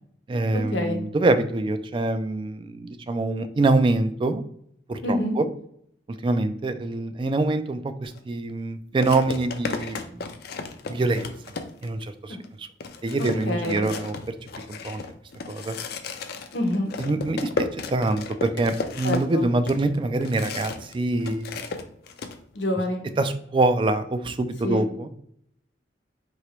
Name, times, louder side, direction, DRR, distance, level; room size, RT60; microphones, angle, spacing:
voice 1, 0.3-4.5 4.9-5.5 6.1-10.2 10.9-11.3 11.8-12.7 13.0-14.2 14.8-15.0 15.5-15.8 17.0-21.6 23.2-25.1, right 2 dB, 30° right, 10 dB, 0.3 m, -25 dB
voice 2, 5.0-5.4 13.2-13.9 16.5-16.9 19.0-19.5 22.5-23.1 24.6-24.8, left 1 dB, 80° left, 3 dB, 1.0 m, -26 dB
sound 1, 8.0-8.2 9.0-12.0 12.4-12.5 12.8-20.9 21.2-22.4, left 4 dB, 60° left, 0.5 m, -34 dB
4.6 x 2.8 x 3.0 m, 0.69 s
head